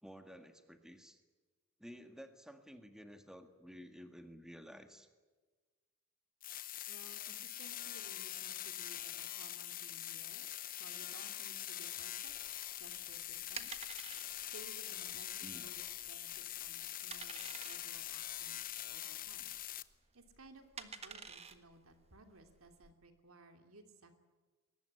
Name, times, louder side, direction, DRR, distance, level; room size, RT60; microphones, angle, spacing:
voice 1, 0.0-1.2 1.8-5.1 15.4-15.6, equal, 5° right, 6 dB, 1.8 m, -53 dB
sound 1, 6.4-19.8, left 12 dB, 40° left, 0.8 m, -44 dB
voice 2, 6.9-12.3 12.8-13.7 14.5-19.5 20.1-24.2, right 2 dB, 80° right, 6 dB, 2.9 m, -59 dB
sound 2, 12.3-22.9, right 5 dB, 30° right, 1.5 m, -52 dB
22.0 x 19.5 x 9.9 m, 1.3 s
head